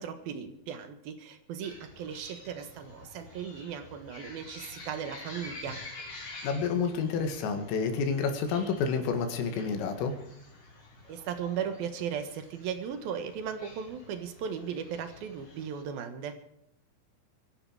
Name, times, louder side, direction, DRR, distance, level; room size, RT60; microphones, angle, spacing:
voice 1, 0.0-5.8 11.1-16.4, right 7 dB, 65° right, 8 dB, 2.5 m, -37 dB
sound 1, 1.6-15.8, left 2 dB, 30° left, 4.2 m, -49 dB
voice 2, 6.4-10.1, left 5 dB, 75° left, 6 dB, 4.7 m, -29 dB
24.5 x 11.0 x 4.8 m, 0.75 s
omnidirectional pair, 6.0 m